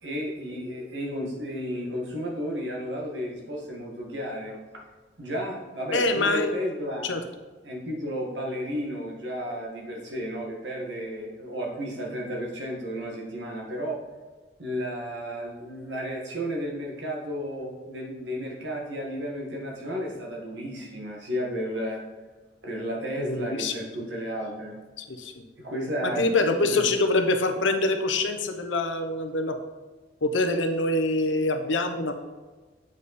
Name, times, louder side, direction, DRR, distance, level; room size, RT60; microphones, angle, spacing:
voice 1, 0.0-4.6 5.2-7.1 7.6-14.0 14.6-22.0 22.6-24.8 25.6-26.2 26.6-26.8, equal, 70° right, -1 dB, 1.8 m, -33 dB
voice 2, 5.9-6.5 7.0-7.2 23.2-23.7 25.0-25.4 26.0-29.6 30.2-32.1, left 2 dB, 90° left, 7 dB, 0.8 m, -25 dB
8.0 x 5.3 x 4.2 m, 1.3 s
head